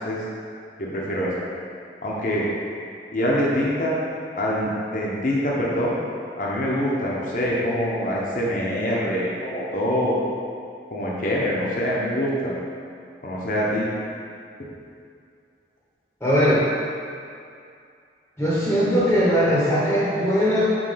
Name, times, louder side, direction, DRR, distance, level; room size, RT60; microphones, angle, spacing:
voice 1, 0.8-1.3 2.0-2.5 3.1-4.0 4.4-5.9 6.4-10.2 10.9-12.5 13.2-13.9, equal, 50° left, -5 dB, 0.9 m, -24 dB
voice 2, 16.2-16.7 18.4-20.8, equal, 10° left, -9 dB, 1.0 m, -20 dB
5.3 x 4.5 x 5.7 m, 2.4 s
head